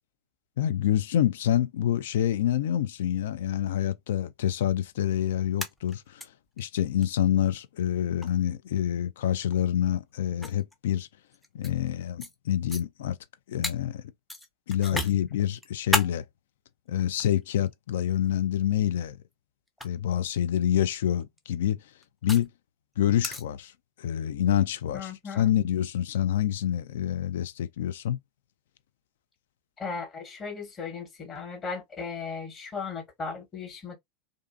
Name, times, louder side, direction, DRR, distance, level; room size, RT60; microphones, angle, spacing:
voice 1, 0.6-6.3 6.6-11.1 11.5-13.2 13.5-14.1 14.7-16.2 16.9-19.2 19.8-21.8 22.2-22.5 23.0-23.7 24.0-28.2, left 10 dB, 60° left, 0.3 m, -27 dB
sound 1, 5.5-6.2 6.6-6.7 7.0-7.1 8.2-8.4 9.5-9.6 10.4-11.8 12.2-12.3 12.7-12.8 13.6-13.8 14.3-15.1 15.5-16.1 17.0-17.7 18.8-19.0 19.7-19.9 21.2-22.5 23.2-23.4, left 1 dB, 5° left, 0.5 m, -32 dB
voice 2, 24.9-25.5 29.8-34.0, left 4 dB, 25° left, 1.2 m, -36 dB
2.5 x 2.3 x 2.4 m
figure-of-eight pair, 85°, 0 cm